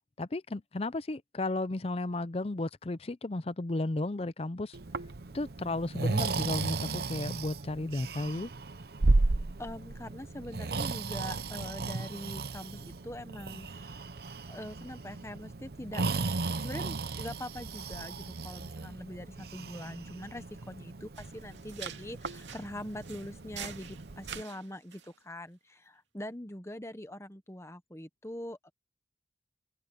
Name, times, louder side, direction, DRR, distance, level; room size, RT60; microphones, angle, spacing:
voice 1, 0.0-4.8 5.3-8.5, left 2 dB, 35° left, 0.6 m, -34 dB
Breathing, 4.7-24.4, right 3 dB, 55° right, 0.8 m, -35 dB
voice 2, 9.6-14.1 14.5-16.0 16.6-28.7, left 1 dB, 15° left, 1.1 m, -43 dB
sound 1, 21.2-25.2, right 9 dB, 85° right, 2.4 m, -47 dB
head